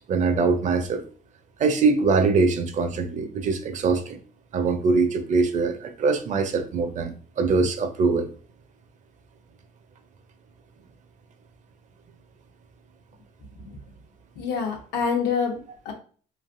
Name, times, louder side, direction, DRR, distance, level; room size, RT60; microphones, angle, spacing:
voice 1, 0.1-1.0 1.6-4.2 4.5-8.3, right 4 dB, 45° right, 8 dB, 0.5 m, -23 dB
voice 2, 14.4-15.9, left 6 dB, 85° left, 2 dB, 0.8 m, -27 dB
3.2 x 2.5 x 2.5 m, 0.42 s
cardioid pair, 110°, 17 cm